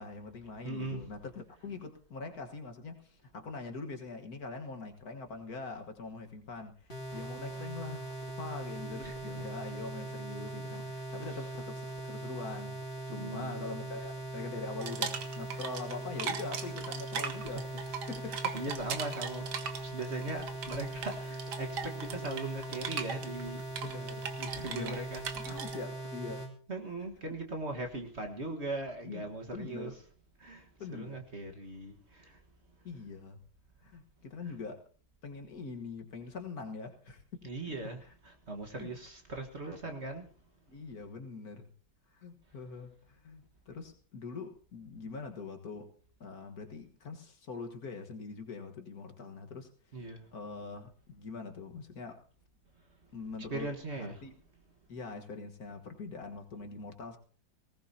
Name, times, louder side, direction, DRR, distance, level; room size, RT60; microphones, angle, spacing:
voice 1, 0.0-8.1 8.4-18.6 19.1-19.2 23.8-24.4 24.7-25.0 25.3-26.5 29.0-30.0 30.8-31.2 32.8-33.4 33.8-34.8 35.2-37.5 38.0-38.1 38.8-38.9 40.7-41.7 42.1-45.9 46.2-49.7 50.3-52.2 53.1-54.3 54.9-57.2, left 4 dB, 55° left, 1.9 m, -43 dB
voice 2, 0.6-1.1 9.0-9.1 11.3-11.4 13.1-13.9 17.4-17.7 18.3-23.6 24.4-25.4 26.7-30.0 30.4-30.6 30.9-31.9 32.2-32.3 37.4-40.2 49.9-50.2 53.5-54.2, right 2 dB, 40° right, 1.7 m, -40 dB
sound 1, 6.9-26.5, right 2 dB, 30° left, 2.7 m, -41 dB
sound 2, 14.8-25.8, right 6 dB, 65° right, 1.7 m, -39 dB
19.5 x 18.5 x 2.8 m
omnidirectional pair, 2.0 m